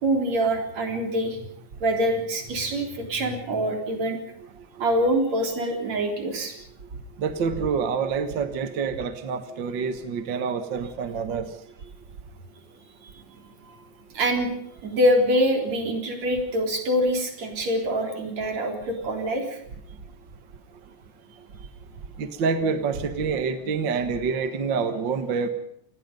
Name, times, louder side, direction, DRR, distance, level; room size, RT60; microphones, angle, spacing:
voice 1, 0.0-1.5 1.8-4.2 4.8-6.5 14.1-14.5 14.8-19.6, equal, 60° right, 3 dB, 5.0 m, -25 dB
voice 2, 7.2-11.5 22.2-25.5, right 5 dB, 45° right, 9 dB, 1.7 m, -27 dB
28.0 x 20.0 x 5.3 m, 0.70 s
omnidirectional pair, 3.4 m